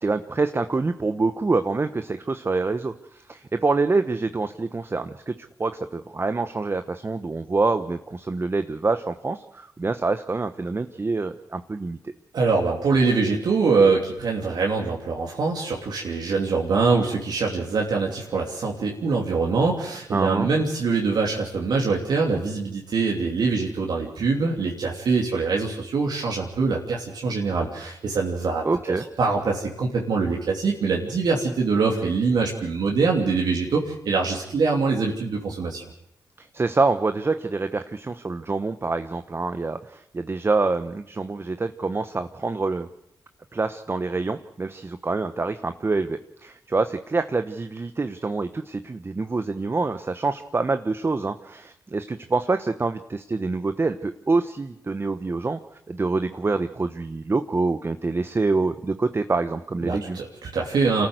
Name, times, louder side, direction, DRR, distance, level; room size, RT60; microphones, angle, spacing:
voice 1, 0.0-5.3 5.6-12.1 20.1-20.5 28.6-29.0 36.4-42.9 43.5-55.6 55.9-60.2, right 3 dB, 35° right, 10 dB, 1.0 m, -26 dB
voice 2, 12.3-28.6 29.2-35.8 59.8-61.1, right 4 dB, 70° right, -1 dB, 3.0 m, -23 dB
25.5 x 14.5 x 8.0 m, 0.81 s
cardioid pair, 55°, 7 cm